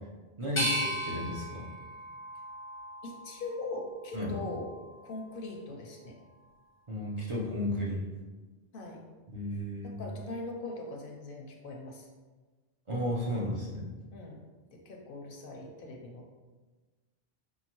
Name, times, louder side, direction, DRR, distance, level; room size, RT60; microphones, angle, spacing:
voice 1, 0.4-1.7 4.1-4.4 6.9-8.1 9.3-10.0 12.9-13.9, left 1 dB, 35° right, -6 dB, 0.6 m, -33 dB
sound 1, 0.6-3.5 4.0-4.8, right 1 dB, 15° left, 0.6 m, -36 dB
voice 2, 3.0-4.7 5.0-6.2 8.7-9.0 9.8-12.1 14.1-14.4 14.7-16.3, left 2 dB, 65° left, 1 dB, 0.7 m, -41 dB
5.5 x 2.4 x 2.9 m, 1.3 s
omnidirectional pair, 1.1 m